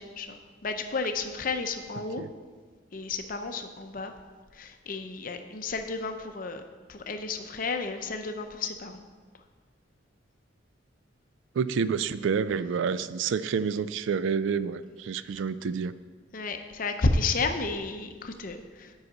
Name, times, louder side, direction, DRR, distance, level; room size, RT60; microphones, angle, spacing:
voice 1, 0.0-2.2 2.9-4.1 4.5-6.6 6.9-9.0 16.3-18.9, left 3 dB, 40° left, 7 dB, 0.6 m, -32 dB
voice 2, 11.5-15.9, right 6 dB, 70° right, 15 dB, 0.3 m, -28 dB
7.9 x 5.6 x 6.0 m, 1.5 s
head